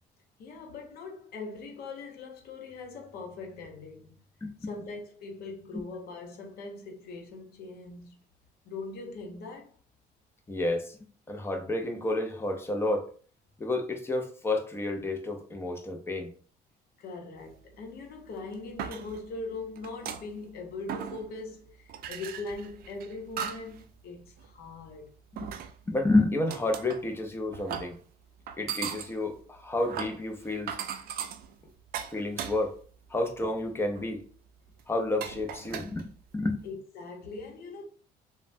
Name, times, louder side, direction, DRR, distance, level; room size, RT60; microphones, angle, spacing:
voice 1, 0.4-4.2 4.7-8.2 8.6-9.7 17.0-25.1 36.6-37.8, left 3 dB, 65° left, 0.8 m, -41 dB
voice 2, 4.4-4.7 5.7-5.8 10.5-11.0 11.3-13.1 13.6-16.3 25.3-25.5 25.9-28.0 28.6-30.8 32.1-32.8 33.1-34.2 34.9-36.1 36.3-36.6, left 2 dB, 15° left, 0.6 m, -30 dB
sound 1, 17.7-17.8 18.4-19.4 19.8-20.5 20.9-21.5 21.9-23.8 24.2-24.5 25.4-26.0 26.5-27.1 27.5-28.0 28.5-32.9 33.3-33.5 33.9-34.1 34.8-34.9 35.2-36.6, right 8 dB, 60° right, 0.4 m, -38 dB
3.1 x 2.2 x 2.6 m
cardioid pair, 110°, 17 cm